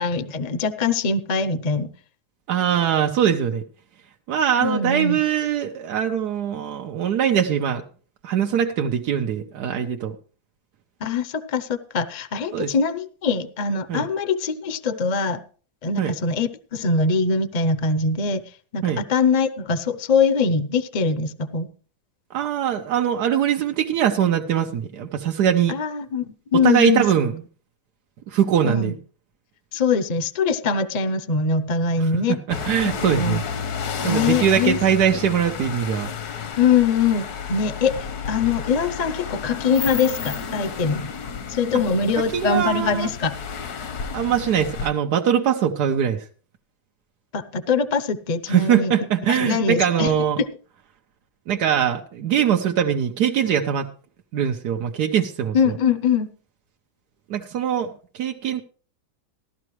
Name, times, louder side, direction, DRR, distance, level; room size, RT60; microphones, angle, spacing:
voice 1, 0.0-1.9 4.6-5.2 11.0-15.4 15.8-18.4 18.7-21.7 25.7-26.2 26.5-27.0 28.6-28.9 29.7-32.4 33.0-33.4 34.0-34.8 36.6-41.1 41.5-43.4 47.3-48.9 49.3-50.1 50.4-50.5 55.5-56.3, left 5 dB, 40° left, 13 dB, 0.6 m, -22 dB
voice 2, 2.5-3.6 4.3-7.8 8.2-10.2 12.5-12.7 13.9-14.0 16.0-16.1 18.8-19.0 22.3-25.8 26.6-27.4 28.3-29.0 32.0-33.4 34.0-36.1 42.3-43.1 44.1-46.3 48.5-50.4 51.5-53.9 54.3-55.7 57.3-58.6, right 9 dB, 90° right, 3 dB, 1.4 m, -22 dB
sound 1, 32.5-44.9, left 6 dB, 75° left, 1.5 m, -31 dB
15.5 x 12.0 x 3.1 m, 0.40 s
omnidirectional pair, 1.7 m